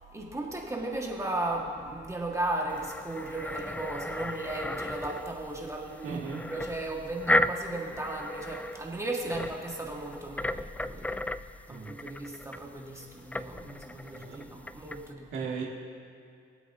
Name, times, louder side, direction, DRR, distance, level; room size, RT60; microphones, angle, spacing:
voice 1, 0.1-6.2 6.5-11.2 11.7-15.3, right 2 dB, 15° right, -1 dB, 1.7 m, -36 dB
sound 1, 2.7-15.1, left 1 dB, 5° left, 0.3 m, -35 dB
voice 2, 6.0-6.4 11.7-11.9 14.1-14.4 15.3-15.7, right 5 dB, 85° right, -4 dB, 2.1 m, -36 dB
23.5 x 8.2 x 2.7 m, 2.5 s
cardioid pair, 90°, 20 cm